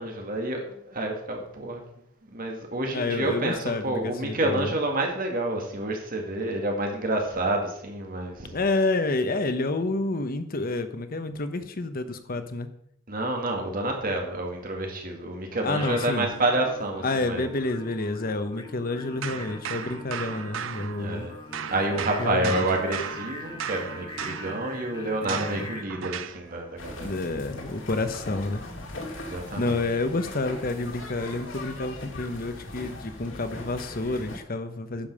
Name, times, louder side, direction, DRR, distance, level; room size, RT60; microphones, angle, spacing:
voice 1, 0.0-1.8 2.3-8.5 13.1-17.5 21.0-21.4 21.7-27.1 29.2-29.8, right 2 dB, 45° right, 2 dB, 1.9 m, -29 dB
voice 2, 2.9-4.7 8.5-12.7 15.6-16.3 17.0-21.3 22.2-22.6 25.2-25.7 27.0-28.6 29.6-35.1, left 2 dB, 50° left, 9 dB, 1.0 m, -29 dB
Singing, 15.7-25.8, left 3 dB, 25° left, 1.0 m, -42 dB
sound 1, 19.2-21.3 21.5-26.4, right 8 dB, 80° right, 0.5 m, -36 dB
sound 2, 26.8-34.4, left 1 dB, 90° left, 2.2 m, -40 dB
10.0 x 5.5 x 6.8 m, 0.71 s
head